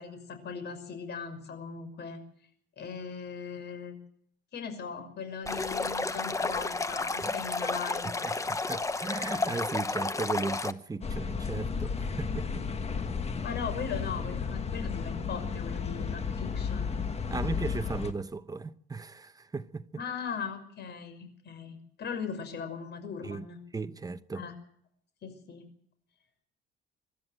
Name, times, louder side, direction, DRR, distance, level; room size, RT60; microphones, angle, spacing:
voice 1, 0.0-2.2 2.8-4.0 4.5-8.3 13.4-16.9 20.0-23.6 24.3-24.5 25.2-25.7, left 6 dB, 55° left, 5.8 m, -39 dB
Stream, 5.5-10.7, left 3 dB, 15° left, 0.9 m, -31 dB
voice 2, 8.0-12.7 17.3-20.0 23.2-23.5 23.7-24.4, right 4 dB, 15° right, 0.9 m, -36 dB
sound 1, 11.0-18.1, left 5 dB, 30° left, 1.8 m, -33 dB
25.0 x 12.5 x 9.0 m
cardioid pair, 145°, 21 cm